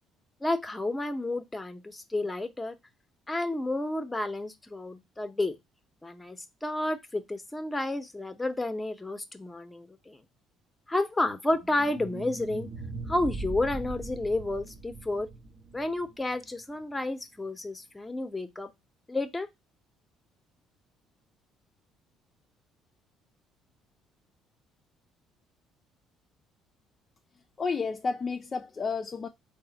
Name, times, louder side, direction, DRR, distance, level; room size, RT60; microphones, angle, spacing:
voice 1, 0.4-2.8 3.3-5.6 6.0-10.2 10.9-12.7 13.1-15.3 15.7-18.7 19.1-19.5, left 2 dB, 15° left, 0.7 m, -31 dB
sound 1, 11.5-16.6, right 3 dB, 50° right, 0.6 m, -40 dB
voice 2, 27.6-29.3, left 4 dB, 35° left, 0.3 m, -31 dB
3.8 x 2.1 x 3.8 m
hypercardioid pair, 65°, 0 cm